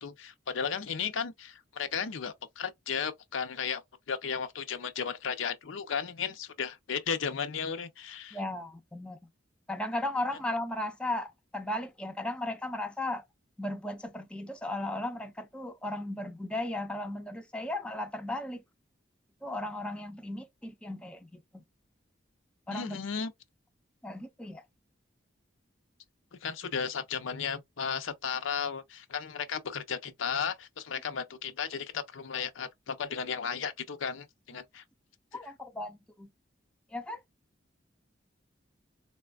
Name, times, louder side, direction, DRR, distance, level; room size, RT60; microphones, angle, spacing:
voice 1, 0.0-3.8 4.1-8.4 22.7-23.3 26.4-34.8, left 6 dB, 90° left, 0.6 m, -34 dB
voice 2, 8.3-9.2 9.7-13.2 13.6-18.6 19.4-21.6 22.7-23.0 24.0-24.6 35.3-36.3 36.9-37.2, left 1 dB, 5° left, 0.4 m, -36 dB
4.1 x 2.2 x 2.3 m
head